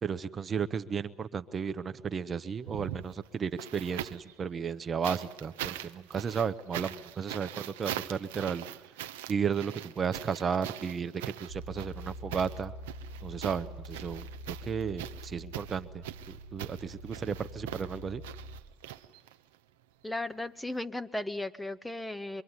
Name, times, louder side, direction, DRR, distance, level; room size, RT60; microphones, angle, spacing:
voice 1, 0.0-8.7 9.3-11.1 11.4-12.7 13.2-18.2, right 6 dB, 40° right, 11 dB, 1.0 m, -34 dB
sound 1, 2.6-4.3 5.0-19.5 20.7-20.8, right 12 dB, 85° right, 1.0 m, -42 dB
sound 2, 11.5-18.6, equal, 85° left, 5.0 m, -45 dB
voice 2, 20.0-22.4, left 2 dB, 10° left, 10 dB, 1.4 m, -36 dB
24.0 x 23.5 x 9.8 m, 1.1 s
hypercardioid pair, 70°, 0 cm